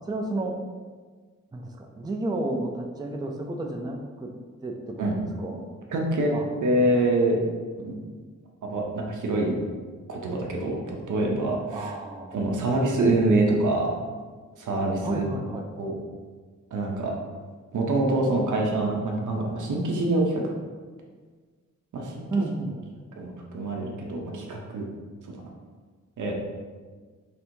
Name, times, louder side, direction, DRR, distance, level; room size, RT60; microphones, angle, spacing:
voice 1, 0.1-0.6 1.5-4.3 4.6-5.0 5.4-5.7 6.3-6.5 6.8-6.9 11.7-12.9 15.0-15.7 22.3-22.9, right 2 dB, 15° right, 2 dB, 0.3 m, -32 dB
voice 2, 5.9-6.3 6.6-7.4 7.8-8.0 8.7-9.5 10.1-11.9 12.3-13.9 14.6-15.3 15.8-16.0 16.7-17.1 17.7-20.4 21.9-22.3 23.2-24.8 25.4-25.5 26.2-26.3, right 2 dB, 85° right, -1 dB, 0.7 m, -25 dB
3.3 x 2.6 x 4.5 m, 1.5 s
wide cardioid pair, 115°, 30 cm